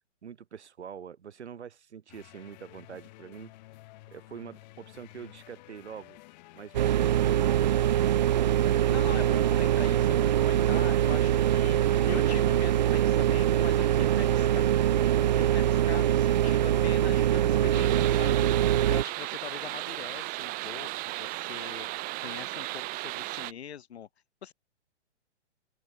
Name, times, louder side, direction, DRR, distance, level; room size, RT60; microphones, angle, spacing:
voice 1, 0.2-3.5 4.1-6.2 6.5-7.9, right 7 dB, 65° right, 4.5 m, -45 dB
sound 1, 2.1-16.9, left 19 dB, 35° left, 3.3 m, -53 dB
sound 2, 6.7-19.0, right 11 dB, 40° right, 0.4 m, -23 dB
voice 2, 8.7-11.8 12.1-14.7 15.3-24.1 24.4-24.5, left 9 dB, 60° left, 2.4 m, -43 dB
sound 3, 17.7-23.5, right 23 dB, 25° right, 1.7 m, -36 dB
open air
hypercardioid pair, 135°, 36 cm